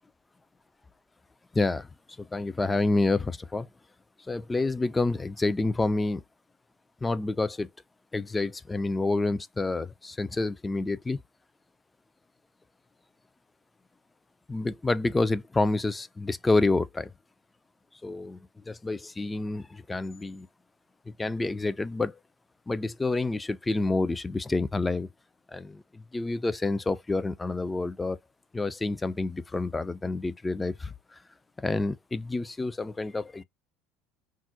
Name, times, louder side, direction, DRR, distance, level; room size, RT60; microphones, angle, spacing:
voice 1, 1.5-1.9 2.2-3.7 4.3-6.2 7.0-7.7 8.1-11.2 14.5-17.1 18.0-18.4 18.7-20.5 21.2-22.1 22.7-25.1 25.5-28.2 28.5-30.9 31.6-33.4, left 3 dB, 15° left, 0.3 m, -28 dB
3.5 x 2.0 x 2.6 m
figure-of-eight pair, 70°, 0 cm